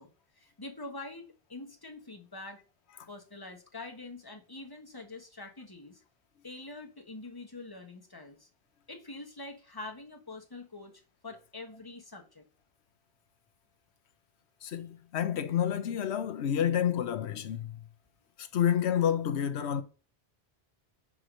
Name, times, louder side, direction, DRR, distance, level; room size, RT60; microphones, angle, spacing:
voice 1, 0.0-2.6 3.1-6.0 6.4-8.5 8.9-12.4 14.7-14.8, left 2 dB, 20° left, 1.3 m, -45 dB
voice 2, 14.6-17.8 18.4-19.8, left 9 dB, 75° left, 1.0 m, -29 dB
5.0 x 4.7 x 6.3 m
omnidirectional pair, 1.1 m